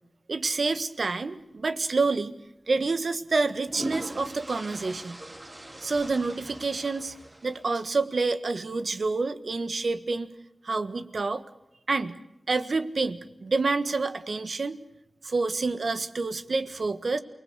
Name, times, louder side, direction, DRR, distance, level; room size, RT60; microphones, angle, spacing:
voice 1, 0.3-2.3 2.7-5.2 5.8-7.1 7.4-10.3 10.6-11.4 11.9-12.2 12.5-14.8 15.2-17.2, right 3 dB, 80° right, 10 dB, 1.5 m, -28 dB
sound 1, 2.0-2.2 3.3-7.9, right 1 dB, 35° right, 3.1 m, -40 dB
28.5 x 20.0 x 8.3 m, 0.86 s
wide cardioid pair, 50°, 0 cm